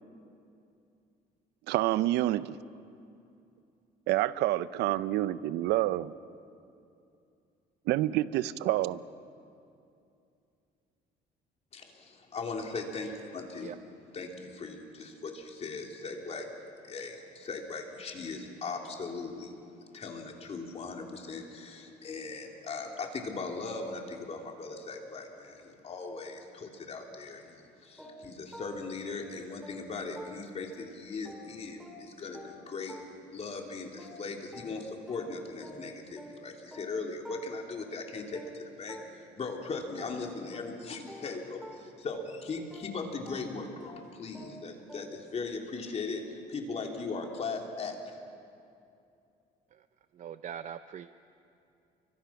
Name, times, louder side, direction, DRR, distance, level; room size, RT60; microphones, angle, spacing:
voice 1, 1.7-2.6 4.1-6.1 7.9-9.0, right 15 dB, 85° right, 16 dB, 0.7 m, -28 dB
voice 2, 11.7-13.7 14.1-16.5 16.8-48.1, left 4 dB, 40° left, 1 dB, 3.4 m, -39 dB
sound 1, 28.0-30.8 31.2-39.6 40.0-45.4, equal, ahead, 3.1 m, -51 dB
voice 3, 50.1-51.2, right 9 dB, 45° right, 11 dB, 0.6 m, -42 dB
29.5 x 24.0 x 5.9 m, 2.6 s
cardioid pair, 110°, 17 cm